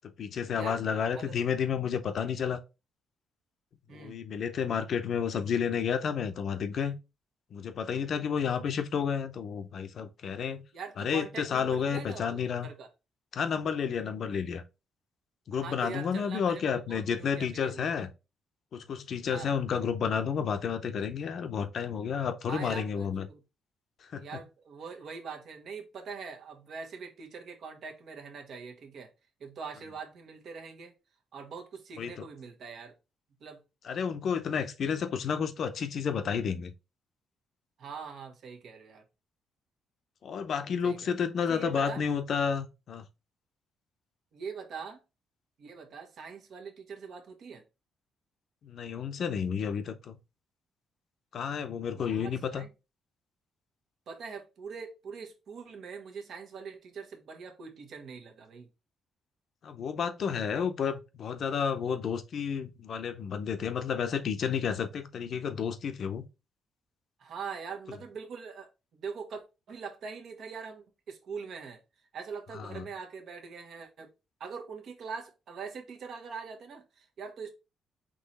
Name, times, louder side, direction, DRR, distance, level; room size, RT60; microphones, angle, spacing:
voice 1, 0.2-2.6 3.9-6.9 7.5-10.6 11.0-12.7 13.3-14.6 15.5-18.1 18.7-23.3 24.1-24.3 32.0-32.3 33.8-36.7 40.2-43.0 48.6-50.2 51.3-52.6 59.6-66.3 72.5-72.8, left 7 dB, 60° left, 0.7 m, -31 dB
voice 2, 3.9-4.2 5.3-5.5 10.7-12.9 15.5-17.9 19.3-19.5 22.5-23.4 24.2-29.1 29.4-30.9 31.3-32.9 33.4-33.6 37.8-39.0 40.8-41.0 41.5-42.0 44.3-45.0 45.6-47.6 52.0-52.7 54.1-58.7 67.2-71.8 72.1-74.1 74.4-77.5, right 5 dB, 65° right, 1.2 m, -43 dB
3.9 x 3.1 x 4.1 m
cardioid pair, 90°, 0 cm